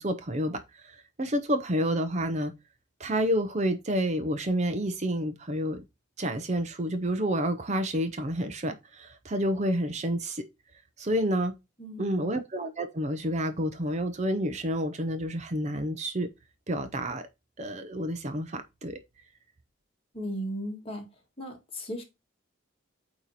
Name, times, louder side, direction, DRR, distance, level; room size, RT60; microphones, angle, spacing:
voice 1, 0.0-2.5 3.0-5.8 6.2-10.4 11.0-11.5 12.0-16.3 16.7-17.2 17.6-19.0, equal, 35° right, 0.6 m, -29 dB
voice 2, 11.8-12.3 20.1-21.1 21.4-22.0, equal, 30° left, 1.9 m, -36 dB
8.9 x 3.0 x 4.1 m
head